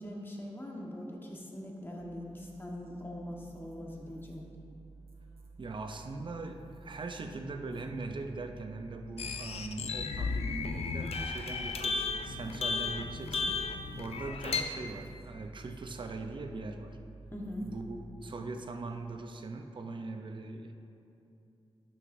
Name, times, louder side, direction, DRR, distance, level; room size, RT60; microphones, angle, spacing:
voice 1, 0.0-4.6 17.3-17.7, left 1 dB, 20° left, -1 dB, 1.2 m, -42 dB
sound 1, 2.0-18.5, right 3 dB, 65° right, 1.0 m, -53 dB
voice 2, 5.6-13.6 14.0-16.9 17.6-20.7, right 3 dB, 50° right, 5 dB, 0.6 m, -41 dB
sound 2, 9.2-14.6, left 4 dB, 75° left, 0.5 m, -34 dB
11.5 x 6.3 x 2.6 m, 2.7 s
wide cardioid pair, 85°, 11 cm